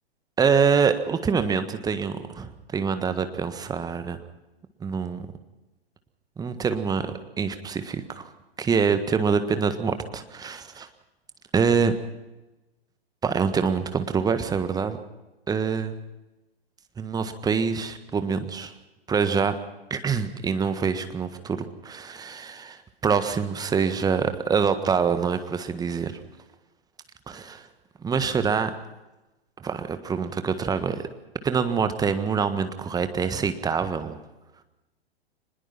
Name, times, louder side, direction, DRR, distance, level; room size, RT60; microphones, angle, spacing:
voice 1, 0.4-4.2 4.8-5.3 6.4-7.1 7.4-8.3 8.6-10.9 11.5-11.9 13.2-15.0 15.5-16.0 17.0-18.7 19.1-19.5 19.9-26.2 27.3-27.6 28.0-28.7 29.6-31.0 31.4-34.2, right 6 dB, 10° right, 9 dB, 1.6 m, -25 dB
24.0 x 21.0 x 5.8 m, 1.0 s
figure-of-eight pair, 110°, 31 cm